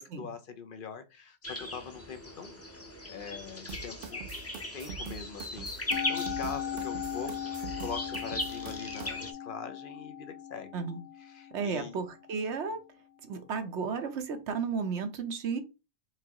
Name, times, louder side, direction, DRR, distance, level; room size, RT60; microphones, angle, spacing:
voice 1, 0.0-2.6 3.1-4.2 4.7-10.8 11.2-12.0, left 5 dB, 55° left, 9 dB, 0.8 m, -43 dB
sound 1, 1.4-9.3, left 1 dB, 15° left, 0.7 m, -39 dB
sound 2, 3.7-9.1, right 6 dB, 65° right, 0.7 m, -43 dB
Musical instrument, 5.9-12.3, left 9 dB, 90° left, 1.3 m, -38 dB
voice 2, 11.5-12.8 13.3-15.6, right 5 dB, 85° right, 7 dB, 1.1 m, -33 dB
4.6 x 3.5 x 2.9 m, 0.28 s
omnidirectional pair, 1.1 m